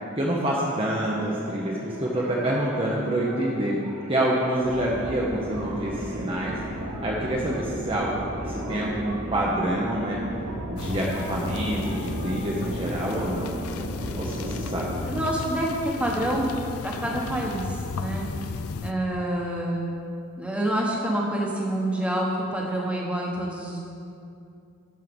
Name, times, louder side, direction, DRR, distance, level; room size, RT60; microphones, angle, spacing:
voice 1, 0.2-3.8 4.1-6.6 7.0-8.2 8.5-10.2 10.7-13.5 14.1-15.0, right 1 dB, 25° right, -4 dB, 0.8 m, -27 dB
sound 1, 1.0-13.3, right 1 dB, 85° right, 2.0 m, -40 dB
sound 2, 4.6-15.1, equal, 50° right, 1.5 m, -35 dB
sound 3, 10.8-18.9, left 4 dB, 80° left, 0.5 m, -34 dB
voice 2, 15.1-16.6 16.8-18.2 18.8-19.9 20.4-23.8, right 1 dB, 5° right, -2 dB, 1.2 m, -27 dB
12.0 x 4.6 x 7.0 m, 2.5 s
head